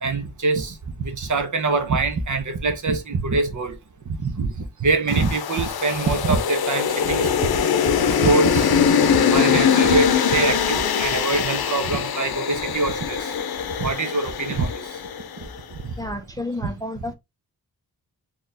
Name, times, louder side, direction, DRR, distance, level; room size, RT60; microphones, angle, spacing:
voice 1, 0.0-3.7 4.1-7.3 7.8-13.3 13.8-14.9 15.8-15.9, right 3 dB, 55° right, 0.9 m, -24 dB
sound 1, 5.1-15.4, left 7 dB, 85° left, 0.6 m, -22 dB
voice 2, 16.0-17.1, left 1 dB, 10° left, 0.5 m, -31 dB
4.1 x 3.0 x 3.3 m
wide cardioid pair, 150°, 36 cm